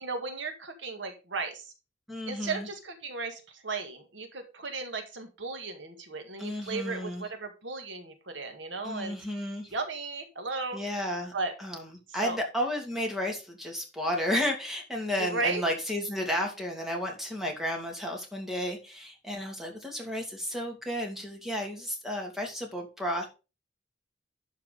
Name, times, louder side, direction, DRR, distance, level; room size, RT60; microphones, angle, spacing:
voice 1, 0.0-1.7 2.3-9.2 9.7-10.8 11.3-11.5 12.2-12.4 15.2-15.6, right 3 dB, 80° right, 6 dB, 1.8 m, -35 dB
voice 2, 2.1-2.7 6.4-7.2 8.8-9.7 10.7-11.3 11.6-23.3, equal, ahead, 1 dB, 2.6 m, -32 dB
11.5 x 4.6 x 5.0 m, 0.30 s
head